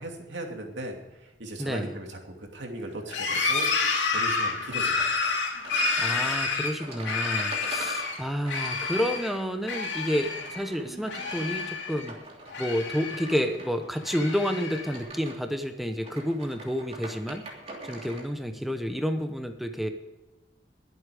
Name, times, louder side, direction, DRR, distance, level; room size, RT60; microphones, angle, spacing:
voice 1, 0.0-5.4, right 1 dB, 80° right, 2 dB, 2.6 m, -38 dB
voice 2, 1.6-1.9 6.0-12.2 12.6-17.4 17.8-19.9, equal, ahead, 6 dB, 0.8 m, -30 dB
sound 1, 3.1-8.2 8.5-9.3 9.6-10.6 10.9-12.1 12.5-13.5 14.0-15.0, left 4 dB, 85° left, 3.0 m, -29 dB
sound 2, 4.7-18.3, right 2 dB, 35° right, 2.9 m, -45 dB
21.0 x 8.4 x 4.9 m, 1.1 s
head